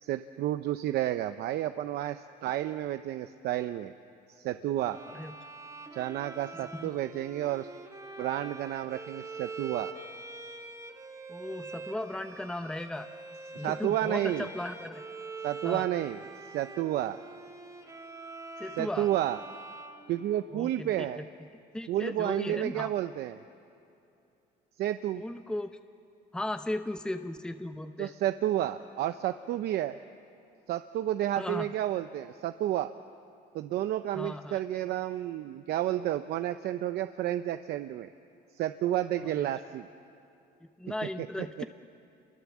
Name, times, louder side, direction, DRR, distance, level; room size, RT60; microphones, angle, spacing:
voice 1, 0.0-3.9 4.3-5.0 5.9-7.7 8.2-9.9 13.5-14.5 15.4-17.2 18.8-19.4 20.1-21.2 21.9-23.4 24.8-25.2 28.0-30.0 30.7-32.9 33.5-38.1 38.5-39.9 41.2-41.3 41.6-41.7, right 13 dB, 75° right, 10 dB, 0.7 m, -31 dB
Bowed string instrument, 4.9-20.7, right 3 dB, 20° right, 2.5 m, -44 dB
voice 2, 11.3-13.1 13.6-15.0 15.6-15.9 18.6-19.1 20.5-21.2 21.7-22.9 25.1-25.8 26.3-28.1 31.4-31.7 34.1-34.6 39.2-39.5 40.6-41.6, left 1 dB, 5° left, 8 dB, 0.9 m, -36 dB
28.5 x 23.0 x 7.4 m, 2.8 s
cardioid pair, 110°, 17 cm